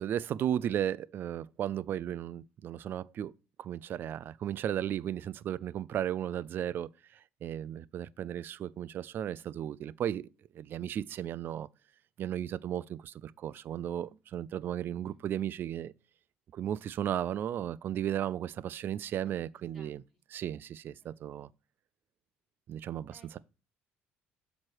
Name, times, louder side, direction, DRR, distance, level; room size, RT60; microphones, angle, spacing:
voice 1, 0.0-3.3 3.6-6.9 7.4-10.3 10.5-11.7 12.2-15.9 16.5-20.0 20.3-21.5 22.7-23.4, right 10 dB, 55° right, 0.3 m, -35 dB
voice 2, 19.7-20.4 21.0-21.5 23.1-23.4, equal, ahead, 2.8 m, -63 dB
7.4 x 3.2 x 6.1 m
cardioid pair, 105°, 4 cm